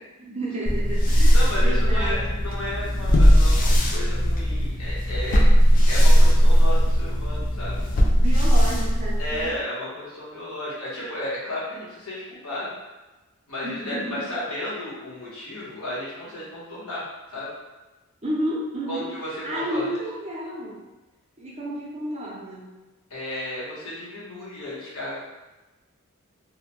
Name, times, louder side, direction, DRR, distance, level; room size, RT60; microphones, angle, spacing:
voice 1, 0.2-2.4 8.1-9.5 13.6-14.3 18.2-19.1 19.4-20.8 21.4-22.7, right 1 dB, 30° right, -4 dB, 0.6 m, -31 dB
sound 1, 0.6-9.6, equal, 40° left, 0.3 m, -18 dB
voice 2, 1.3-5.4 5.9-7.8 9.2-12.7 13.5-17.0 17.3-17.5 18.9-19.9 23.1-25.2, left 1 dB, 90° left, -8 dB, 1.1 m, -33 dB
2.7 x 2.1 x 3.0 m, 1.1 s
head